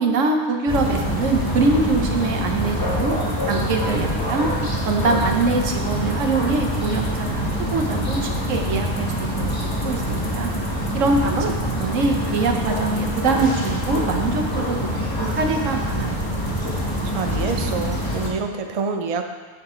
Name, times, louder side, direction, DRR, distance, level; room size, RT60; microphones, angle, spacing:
voice 1, 0.0-3.1 3.4-4.5 4.8-9.5 9.8-10.5 10.9-11.4 11.8-16.3, right 3 dB, 85° right, 3 dB, 1.3 m, -23 dB
sound 1, 0.7-18.3, equal, 20° left, 1.3 m, -25 dB
voice 2, 17.0-19.2, right 5 dB, 40° right, 4 dB, 0.5 m, -27 dB
8.4 x 6.9 x 4.3 m, 1.4 s
omnidirectional pair, 1.3 m